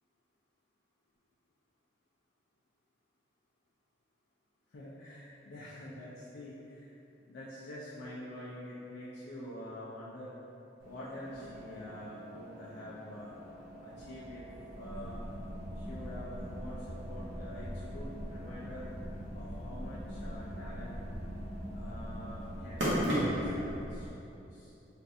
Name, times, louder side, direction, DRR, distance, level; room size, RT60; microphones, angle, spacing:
voice 1, 4.7-6.9 7.3-10.3 10.8-13.3 13.8-14.5 14.7-15.3 15.8-18.9 19.3-21.0 21.7-23.6 23.9-24.1 24.5-24.7, left 1 dB, 65° left, -7 dB, 0.4 m, -46 dB
sound 1, 10.8-23.6, equal, 70° right, 0.8 m, -40 dB
sound 2, 14.7-24.1, equal, 35° left, 0.7 m, -43 dB
3.1 x 2.5 x 2.5 m, 2.9 s
head